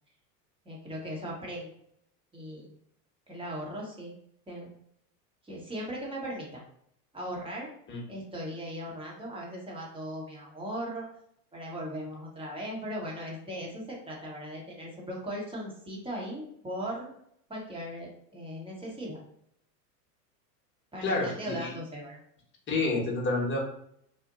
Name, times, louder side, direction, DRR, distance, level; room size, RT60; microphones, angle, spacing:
voice 1, 0.6-1.7 2.3-2.7 3.3-4.1 4.5-4.7 5.4-6.6 7.1-7.7 8.1-11.1 11.5-17.1 17.5-19.2 20.9-22.2, equal, 10° right, -3 dB, 1.0 m, -38 dB
voice 2, 21.0-21.7 22.7-23.6, left 3 dB, 25° left, -2 dB, 1.0 m, -29 dB
2.5 x 2.1 x 3.7 m, 0.71 s
hypercardioid pair, 100°, 49 cm